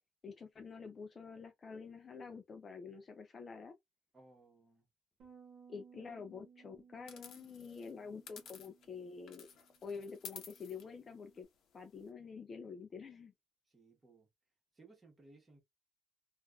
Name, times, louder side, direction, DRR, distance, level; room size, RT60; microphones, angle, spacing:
voice 1, 0.2-3.7 5.7-9.5 9.8-11.5 11.7-13.3, left 5 dB, 25° left, 0.3 m, -48 dB
voice 2, 4.1-4.9 13.7-14.3 14.7-15.6, right 3 dB, 15° right, 1.1 m, -62 dB
Bass guitar, 5.2-11.4, right 6 dB, 50° right, 1.0 m, -63 dB
sound 1, 7.1-9.0 9.3-12.1, left 7 dB, 50° left, 0.8 m, -54 dB
3.3 x 2.3 x 2.3 m
cardioid pair, 165°, 0 cm